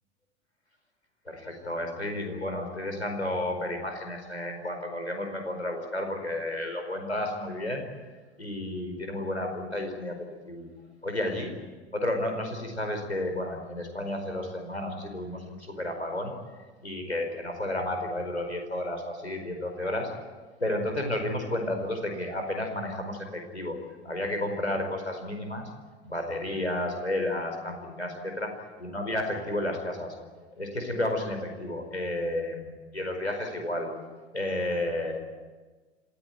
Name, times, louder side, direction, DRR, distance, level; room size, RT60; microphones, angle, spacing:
voice 1, 1.2-7.8 8.4-10.7 11.0-11.5 11.9-16.3 16.8-20.1 20.6-23.8 24.0-25.7 26.0-28.5 28.8-33.9 34.3-35.2, left 1 dB, 90° left, 4 dB, 4.8 m, -32 dB
27.5 x 16.5 x 9.3 m, 1.3 s
figure-of-eight pair, 85°, 33 cm